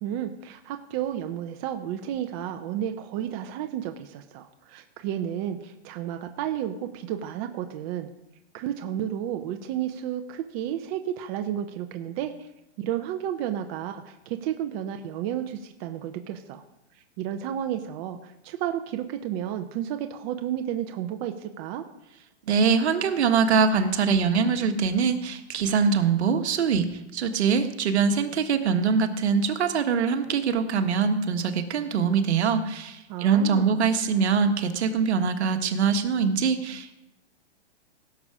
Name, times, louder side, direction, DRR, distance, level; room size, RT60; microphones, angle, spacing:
voice 1, 0.0-8.1 8.5-12.5 12.8-16.6 16.9-21.8 33.1-33.8, right 10 dB, 30° right, 6 dB, 0.7 m, -32 dB
voice 2, 22.5-37.0, right 6 dB, 65° right, 7 dB, 1.6 m, -23 dB
17.5 x 6.9 x 5.0 m, 0.93 s
hypercardioid pair, 140°, 35 cm